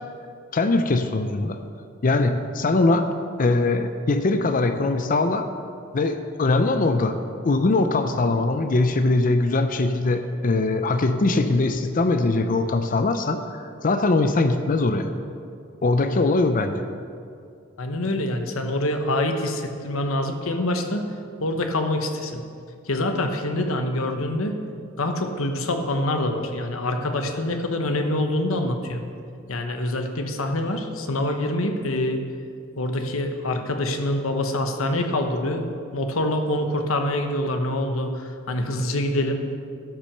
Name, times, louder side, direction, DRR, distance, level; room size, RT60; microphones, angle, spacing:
voice 1, 0.5-1.6 2.0-3.1 3.4-5.5 5.9-7.2 7.4-15.1 15.8-16.8, left 2 dB, 40° left, 8 dB, 0.5 m, -21 dB
voice 2, 17.8-21.0 21.4-22.4 22.9-24.6 25.0-29.0 29.5-32.2 32.8-35.7 35.9-39.4, left 1 dB, 80° left, 5 dB, 1.1 m, -25 dB
12.0 x 6.1 x 6.7 m, 2.4 s
head